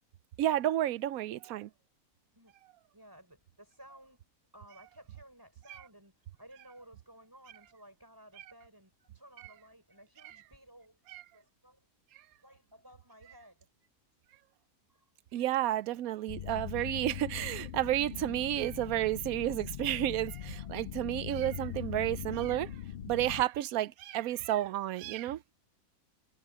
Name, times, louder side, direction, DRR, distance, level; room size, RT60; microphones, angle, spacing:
voice 1, 0.4-1.7 5.7-5.8 10.2-10.3 11.1-11.2 15.3-22.7 23.1-25.6, right 13 dB, 70° right, 1.0 m, -31 dB
voice 2, 2.9-4.2 4.5-11.0 11.3-11.9 12.4-13.9 14.9-15.0, right 1 dB, 15° right, 4.8 m, -56 dB
sound 1, 16.3-23.4, left 11 dB, 85° left, 0.5 m, -41 dB
omnidirectional pair, 1.6 m